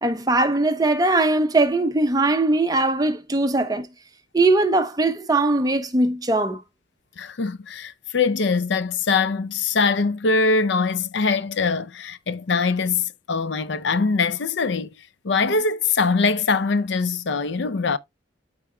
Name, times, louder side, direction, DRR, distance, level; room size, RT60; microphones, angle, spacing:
voice 1, 0.0-3.9 4.3-6.6, right 2 dB, 20° right, 0.8 m, -20 dB
voice 2, 7.2-14.9 15.2-18.0, left 4 dB, 65° left, 0.5 m, -22 dB
13.0 x 4.8 x 2.2 m
head